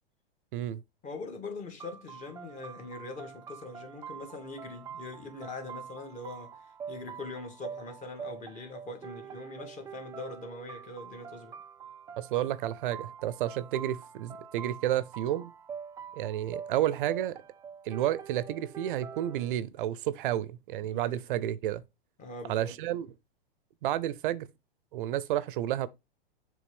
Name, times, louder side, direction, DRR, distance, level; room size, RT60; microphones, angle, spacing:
voice 1, 1.0-6.6 6.9-11.6 20.8-21.2 22.2-22.8, left 3 dB, 25° left, 2.4 m, -42 dB
sound 1, 1.8-19.6, right 7 dB, 10° right, 0.4 m, -45 dB
voice 2, 12.2-15.5 16.2-17.4 17.8-21.8 22.5-23.1 23.8-24.5 24.9-25.9, right 12 dB, 60° right, 0.7 m, -31 dB
6.8 x 3.6 x 5.2 m
hypercardioid pair, 120°, 29 cm